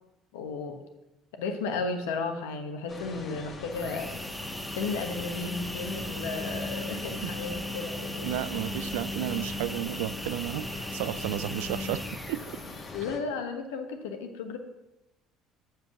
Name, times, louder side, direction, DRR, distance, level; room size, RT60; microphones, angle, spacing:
voice 1, 0.3-0.8 1.4-4.1 4.7-8.4 12.9-14.6, left 4 dB, 85° left, 1.1 m, -34 dB
sound 1, 2.9-13.2, left 2 dB, 40° left, 1.4 m, -42 dB
sound 2, 3.7-13.1, left 1 dB, 5° left, 0.9 m, -37 dB
voice 2, 8.2-12.4, right 15 dB, 80° right, 0.3 m, -33 dB
7.2 x 5.7 x 6.0 m
hypercardioid pair, 70°, 0 cm